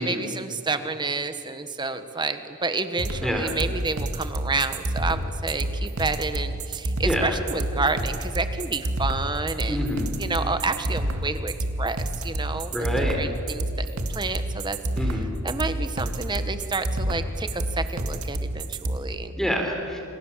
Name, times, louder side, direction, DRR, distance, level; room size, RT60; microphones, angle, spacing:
voice 1, 0.0-9.8 10.2-12.0 12.2-12.9 13.2-13.8 14.1-14.8 15.4-19.3, right 3 dB, 20° right, 9 dB, 1.4 m, -29 dB
sound 1, 3.0-19.0, right 1 dB, 80° right, 2.0 m, -28 dB
voice 2, 3.2-3.5 7.0-7.4 9.7-10.1 12.7-13.2 15.0-15.3 19.4-20.0, equal, ahead, 2 dB, 3.8 m, -27 dB
28.5 x 28.0 x 7.5 m, 2.6 s
head